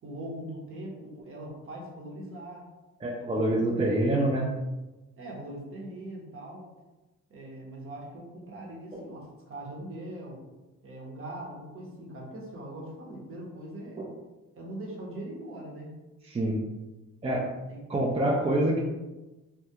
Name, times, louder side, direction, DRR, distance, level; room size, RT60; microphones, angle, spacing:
voice 1, 0.0-2.7 3.2-4.2 5.2-6.7 7.3-10.4 10.8-14.1 14.6-16.0 17.7-17.8, right 1 dB, 45° right, -2 dB, 0.8 m, -41 dB
voice 2, 3.0-4.5 8.9-9.0 14.0-14.1 16.3-16.6 17.2-17.5 17.9-18.8, right 1 dB, 20° right, -3 dB, 0.4 m, -26 dB
2.3 x 2.2 x 2.8 m, 1.1 s
cardioid pair, 90°, 30 cm